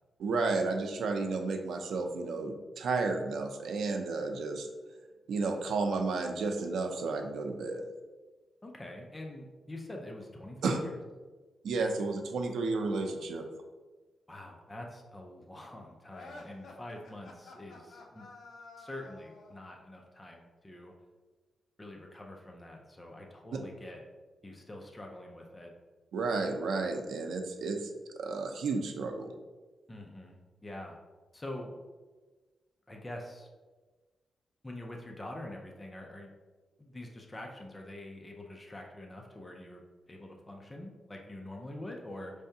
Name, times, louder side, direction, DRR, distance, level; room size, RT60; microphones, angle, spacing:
voice 1, 0.2-4.7 5.3-7.8 10.6-10.8 11.6-13.4 26.1-27.9 28.2-29.3, right 3 dB, 80° right, 4 dB, 0.5 m, -32 dB
voice 2, 8.6-11.0 14.3-18.3 18.8-20.9 21.8-24.0 24.4-25.7 29.9-31.0 31.3-31.8 32.9-33.5 34.6-36.3 36.8-42.3, left 1 dB, 15° left, 0 dB, 0.4 m, -45 dB
sound 1, 16.1-19.6, left 3 dB, 60° left, 0.6 m, -51 dB
4.5 x 3.3 x 2.7 m, 1.3 s
wide cardioid pair, 150°, 0 cm